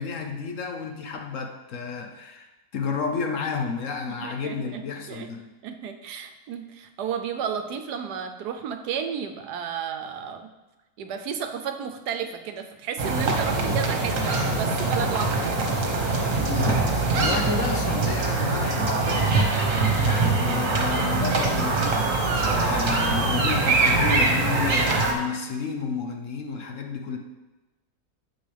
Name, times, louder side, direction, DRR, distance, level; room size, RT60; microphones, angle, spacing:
voice 1, 0.0-5.5 16.3-27.2, left 5 dB, 60° left, 4 dB, 1.0 m, -31 dB
voice 2, 4.2-5.3 5.6-10.5 11.0-15.6, right 7 dB, 85° right, 7 dB, 1.3 m, -32 dB
sound 1, 13.0-25.1, right 3 dB, 55° right, 1.6 m, -23 dB
8.9 x 7.7 x 3.4 m, 1.1 s
omnidirectional pair, 1.7 m